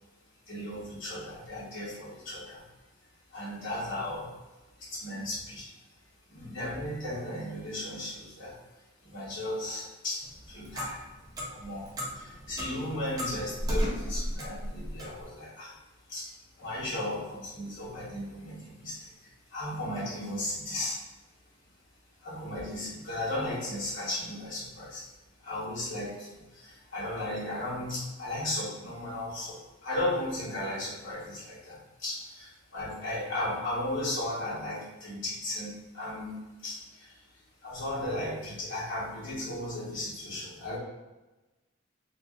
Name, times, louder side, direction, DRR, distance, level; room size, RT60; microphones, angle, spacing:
voice 1, 0.5-2.6 3.3-4.3 4.8-5.7 6.3-8.6 9.0-11.0 11.5-15.7 16.1-21.0 22.2-25.1 25.4-40.8, left 1 dB, 65° left, -8 dB, 1.0 m, -36 dB
Clock, 10.2-15.2, equal, 20° right, 0.4 m, -35 dB
2.5 x 2.3 x 2.3 m, 1.1 s
head